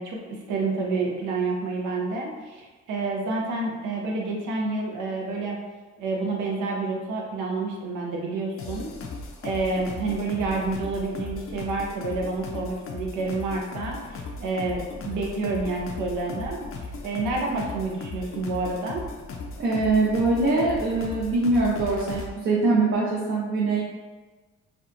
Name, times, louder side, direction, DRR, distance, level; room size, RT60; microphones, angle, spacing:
voice 1, 0.0-5.6 6.0-8.9 9.4-19.0, right 3 dB, 80° right, 0 dB, 0.6 m, -29 dB
sound 1, 8.6-22.3, left 3 dB, 45° left, 0.4 m, -37 dB
voice 2, 19.6-23.8, right 3 dB, 45° right, -6 dB, 0.6 m, -23 dB
2.7 x 2.3 x 2.4 m, 1.3 s
cardioid pair, 90°, 30 cm